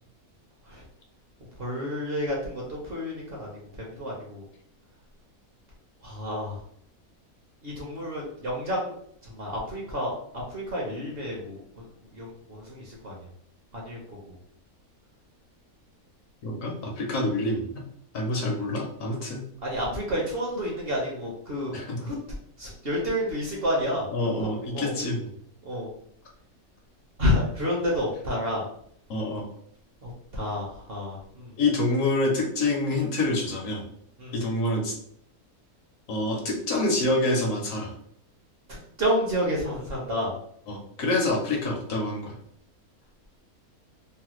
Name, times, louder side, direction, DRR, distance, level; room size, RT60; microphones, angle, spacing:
voice 1, 1.6-3.5 3.8-4.4 6.0-6.6 7.6-8.9 9.3-10.2 10.5-11.6 12.1-13.1 13.7-14.0 19.6-21.8 22.0-22.2 22.6-24.1 24.7-24.9 25.6-25.9 27.2-28.6 30.0-31.5 34.2-34.3 38.7-40.3, equal, 50° right, -3 dB, 0.8 m, -29 dB
voice 2, 16.4-17.8 18.1-19.4 21.7-22.0 24.1-25.3 29.1-29.5 31.6-33.8 34.3-35.0 36.1-37.9 40.7-42.3, left 2 dB, 70° left, 1 dB, 1.0 m, -27 dB
3.2 x 2.1 x 2.9 m, 0.68 s
omnidirectional pair, 1.5 m